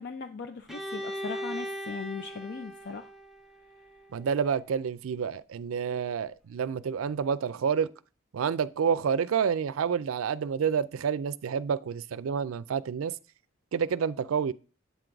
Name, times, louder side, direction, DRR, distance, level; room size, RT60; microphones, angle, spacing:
voice 1, 0.0-3.1, left 5 dB, 55° left, 0.5 m, -39 dB
Bowed string instrument, 0.7-4.5, equal, ahead, 0.5 m, -39 dB
voice 2, 4.1-7.9 8.3-13.1 13.7-14.5, right 7 dB, 85° right, 0.4 m, -29 dB
8.2 x 3.9 x 4.5 m
head